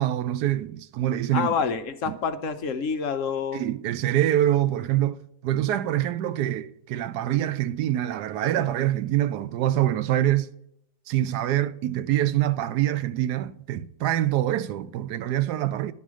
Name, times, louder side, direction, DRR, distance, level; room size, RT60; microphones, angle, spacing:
voice 1, 0.0-1.5 2.1-2.2 3.5-10.5 11.1-15.9, right 12 dB, 85° right, 1.2 m, -25 dB
voice 2, 1.3-3.7, left 6 dB, 65° left, 0.9 m, -27 dB
11.0 x 4.2 x 6.2 m
omnidirectional pair, 1.7 m